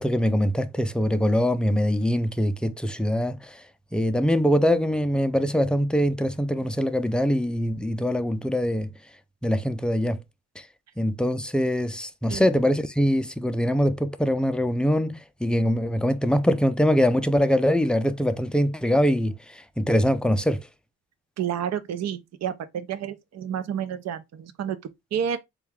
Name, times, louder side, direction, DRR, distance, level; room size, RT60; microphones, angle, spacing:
voice 1, 0.0-3.6 3.9-8.9 9.4-10.2 11.0-20.6, equal, 5° left, 0.4 m, -23 dB
voice 2, 21.4-24.8 25.1-25.4, right 8 dB, 60° right, 0.7 m, -30 dB
4.1 x 2.4 x 3.4 m
cardioid pair, 90°, 30 cm